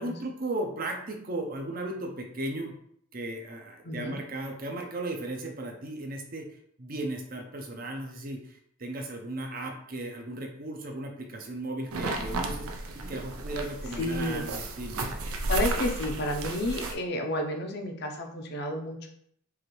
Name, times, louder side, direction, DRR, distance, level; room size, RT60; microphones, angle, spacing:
voice 1, 0.0-2.7 3.1-12.7 12.9-15.0, right 1 dB, 40° right, 2 dB, 0.6 m, -36 dB
sound 1, 11.9-16.9, right 2 dB, 85° right, 0.5 m, -33 dB
voice 2, 14.0-14.4 15.5-19.1, left 1 dB, 50° left, 3 dB, 0.6 m, -31 dB
4.7 x 2.6 x 3.1 m, 0.68 s
head